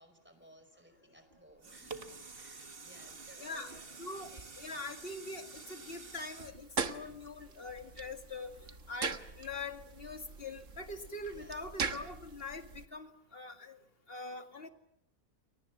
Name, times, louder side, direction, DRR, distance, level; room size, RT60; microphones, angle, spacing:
voice 1, 0.0-4.4 11.3-11.7, equal, 5° right, 9 dB, 4.8 m, -60 dB
sound 1, 1.3-7.6 8.1-8.2, right 4 dB, 40° right, 1.9 m, -49 dB
voice 2, 3.4-8.5 8.9-13.8 14.1-14.7, left 3 dB, 40° left, 6 dB, 2.3 m, -43 dB
sound 2, 6.4-12.8, right 5 dB, 60° right, 1.8 m, -41 dB
30.0 x 22.5 x 7.2 m, 0.77 s
omnidirectional pair, 1.5 m